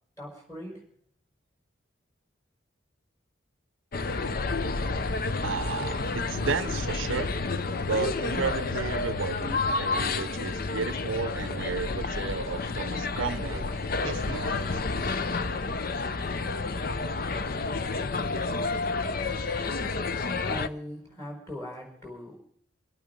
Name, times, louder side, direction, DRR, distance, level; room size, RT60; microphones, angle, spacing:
voice 1, 0.2-0.8 19.9-22.4, equal, 15° left, 5.1 m, -40 dB
sound 1, 3.9-20.7, left 3 dB, 45° left, 0.6 m, -30 dB
voice 2, 5.4-7.3 7.9-13.7 14.0-15.0, right 5 dB, 80° right, 0.6 m, -33 dB
25.5 x 8.7 x 5.2 m
head